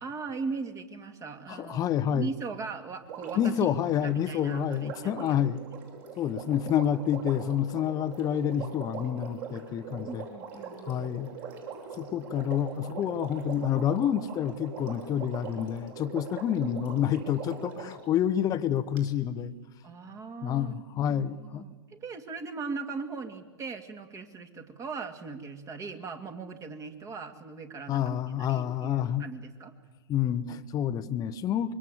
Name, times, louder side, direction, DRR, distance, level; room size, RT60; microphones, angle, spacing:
voice 1, 0.0-3.7 4.0-5.4 10.1-11.2 19.8-28.2 28.5-29.7, right 4 dB, 20° right, 8 dB, 2.2 m, -39 dB
voice 2, 1.5-2.3 3.4-5.6 6.2-10.3 10.8-11.3 12.0-19.5 20.4-21.6 27.9-29.3 30.1-31.7, left 9 dB, 25° left, 11 dB, 1.0 m, -28 dB
Water, 3.0-18.0 19.0-19.1, right 5 dB, 45° right, 6.7 m, -42 dB
25.5 x 22.5 x 7.9 m, 1.4 s
hypercardioid pair, 115°, 14 cm